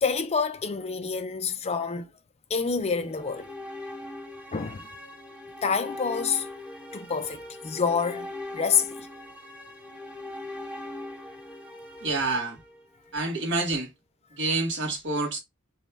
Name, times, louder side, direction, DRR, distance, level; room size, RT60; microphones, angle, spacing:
voice 1, 0.0-2.1 2.5-3.5 4.5-4.9 5.6-6.5 6.9-9.1, left 5 dB, 30° left, 0.5 m, -27 dB
sound 1, 3.0-13.2, left 1 dB, 5° right, 0.9 m, -41 dB
voice 2, 12.0-12.6 13.1-13.9 14.3-15.4, right 3 dB, 60° right, 1.6 m, -28 dB
5.2 x 2.4 x 3.3 m
head